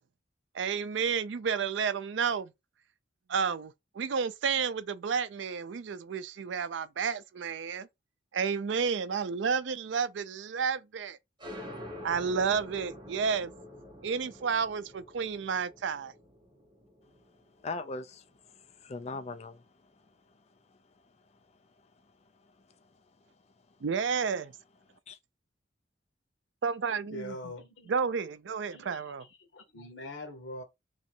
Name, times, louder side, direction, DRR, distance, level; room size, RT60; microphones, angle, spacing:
voice 1, 0.5-2.5 3.3-7.9 8.3-11.2 12.0-13.5 14.0-16.1 23.8-24.5 26.6-27.4 27.9-29.2, right 6 dB, 75° right, 0.4 m, -31 dB
sound 1, 11.4-18.7, left 1 dB, 25° right, 1.0 m, -47 dB
voice 2, 17.6-19.6 25.1-25.2, left 3 dB, 35° left, 0.4 m, -40 dB
voice 3, 27.1-27.9 28.7-30.6, left 1 dB, 90° left, 1.2 m, -43 dB
3.0 x 2.6 x 4.4 m
head